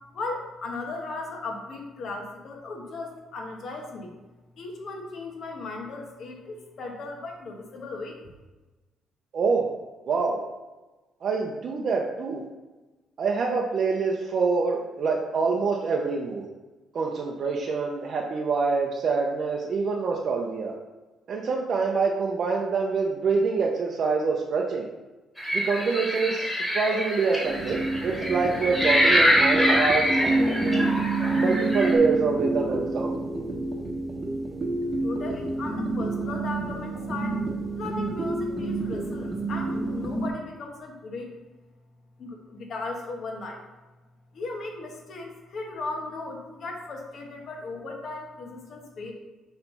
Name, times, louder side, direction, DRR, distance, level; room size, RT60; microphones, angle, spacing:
voice 1, 0.1-4.1 4.6-8.2 35.0-37.4 37.7-41.3 42.2-43.6 44.3-49.1, left 3 dB, 50° left, 1 dB, 1.4 m, -36 dB
voice 2, 9.3-9.7 10.1-10.4 11.2-12.4 13.2-16.5 16.9-20.7 21.3-24.9 25.5-30.9 31.3-33.2, right 4 dB, 45° right, -1 dB, 0.7 m, -26 dB
sound 1, 25.4-31.9, equal, 5° left, 2.1 m, -25 dB
sound 2, 27.4-40.3, right 2 dB, 25° right, 1.1 m, -28 dB
7.1 x 3.3 x 5.5 m, 1.2 s
cardioid pair, 145°, 0 cm